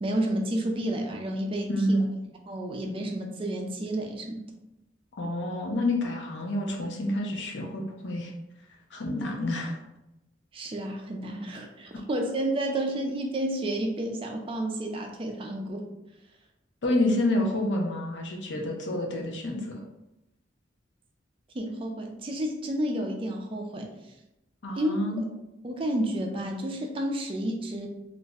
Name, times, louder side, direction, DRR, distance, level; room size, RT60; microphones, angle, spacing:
voice 1, 0.0-2.0 2.5-4.4 10.5-15.8 21.5-23.9 24.8-25.0 25.6-27.9, right 1 dB, 30° right, 2 dB, 0.4 m, -30 dB
voice 2, 1.7-2.1 5.2-8.3 8.9-9.8 16.8-19.8 24.6-25.2, left 1 dB, 80° left, 1 dB, 0.6 m, -28 dB
2.5 x 2.0 x 3.5 m, 0.92 s
head